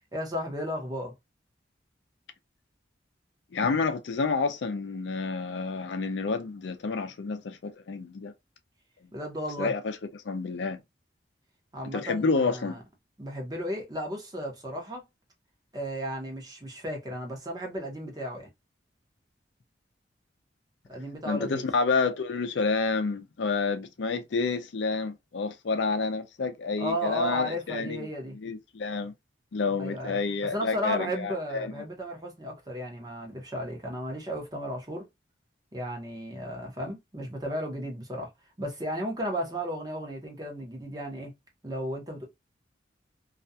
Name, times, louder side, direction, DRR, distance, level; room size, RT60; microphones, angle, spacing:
voice 1, 0.1-1.1 9.1-9.7 11.7-12.8 13.2-15.0 15.7-18.5 20.9-21.7 26.8-28.4 29.8-35.1 35.7-38.3 38.6-41.3 41.6-42.2, equal, 20° right, 0.8 m, -34 dB
voice 2, 3.5-8.3 9.6-10.0 10.2-10.8 11.9-12.8 21.3-28.1 28.4-29.1 29.5-31.7, left 4 dB, 80° left, 0.5 m, -29 dB
2.4 x 2.2 x 2.6 m
head